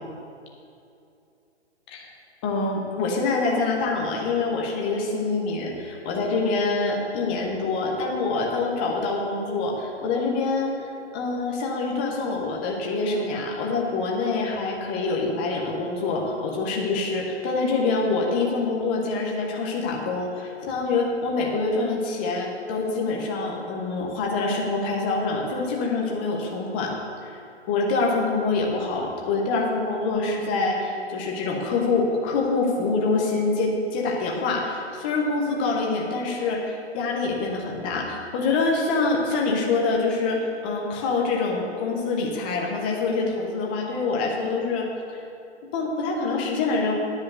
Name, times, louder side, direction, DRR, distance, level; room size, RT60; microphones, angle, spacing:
voice 1, 2.4-10.7 11.1-26.9 27.2-27.4 27.7-45.2 45.7-47.0, left 3 dB, 10° left, -1 dB, 0.4 m, -25 dB
9.7 x 5.0 x 7.9 m, 2.6 s
hypercardioid pair, 150°, 34 cm